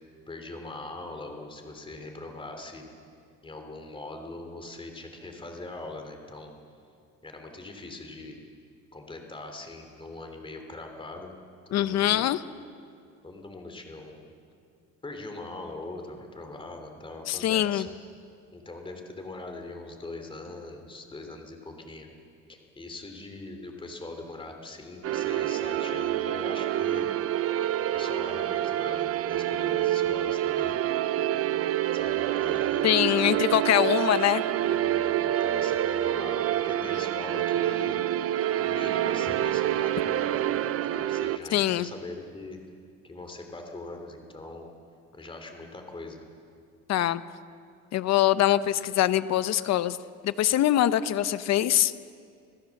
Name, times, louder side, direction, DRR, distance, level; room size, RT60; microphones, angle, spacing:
voice 1, 0.3-2.9 3.4-6.5 7.2-8.4 8.9-11.3 11.7-12.3 13.2-14.3 15.0-17.9 18.5-22.1 22.5-27.1 27.5-27.6 27.9-30.8 31.5-33.6 34.6-38.0 38.6-40.6 40.9-42.6 43.0-44.7 45.1-46.2, left 2 dB, 15° left, 4 dB, 3.1 m, -41 dB
voice 2, 11.7-12.4 17.3-17.9 32.8-34.4 41.5-41.9 46.9-47.2 47.9-50.0 50.2-51.9, left 12 dB, 55° left, 14 dB, 0.8 m, -23 dB
sound 1, 25.0-41.4, right 12 dB, 50° right, 0.7 m, -27 dB
27.0 x 16.0 x 7.2 m, 2.3 s
cardioid pair, 130°, 31 cm